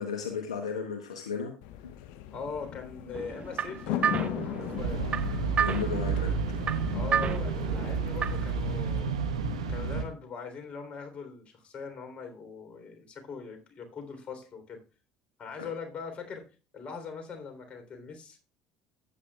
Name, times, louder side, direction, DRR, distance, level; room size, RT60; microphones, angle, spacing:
voice 1, 0.0-1.6 5.6-6.3 15.6-15.7, left 6 dB, 85° left, 5 dB, 1.0 m, -34 dB
sound 1, 1.6-9.0, left 12 dB, 65° left, 0.7 m, -38 dB
voice 2, 2.3-5.0 6.9-9.2 9.7-14.8 15.4-16.4 16.7-18.4, left 5 dB, 40° left, 5 dB, 3.4 m, -41 dB
sound 2, 3.1-8.6, right 8 dB, 40° right, 0.7 m, -33 dB
sound 3, 4.8-10.1, right 5 dB, 85° right, 1.1 m, -31 dB
14.5 x 8.5 x 2.3 m, 0.32 s
hypercardioid pair, 60°, 3 cm